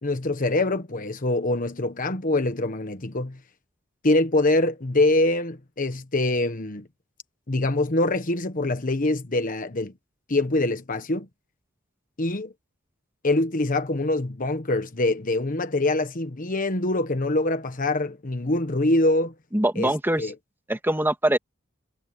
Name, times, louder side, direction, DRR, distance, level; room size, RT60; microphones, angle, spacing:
voice 1, 0.0-3.4 4.0-6.9 7.5-9.9 10.3-11.3 12.2-12.5 13.2-19.3 19.8-19.9 20.2-20.3, left 2 dB, 45° left, 1.2 m, -24 dB
voice 2, 19.5-20.3 20.7-21.4, right 1 dB, 10° right, 2.7 m, -23 dB
head